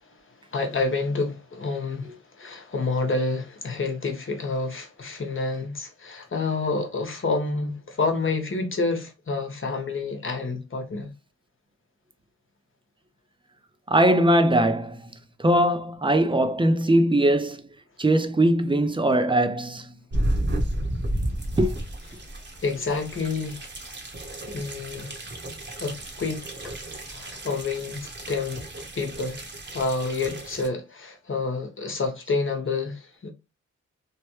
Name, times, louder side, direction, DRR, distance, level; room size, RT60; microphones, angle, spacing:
voice 1, 0.5-11.1 22.6-23.7 24.5-25.2 25.8-26.8 27.1-28.6 28.9-29.4 29.7-33.3, left 3 dB, 40° left, 1.0 m, -28 dB
voice 2, 13.9-15.0 15.4-17.6 18.0-19.9 21.6-21.7, right 1 dB, 15° right, 0.5 m, -20 dB
sound 1, 20.1-30.7, right 1 dB, 35° right, 1.0 m, -32 dB
3.2 x 2.1 x 3.0 m
cardioid pair, 65°, 30 cm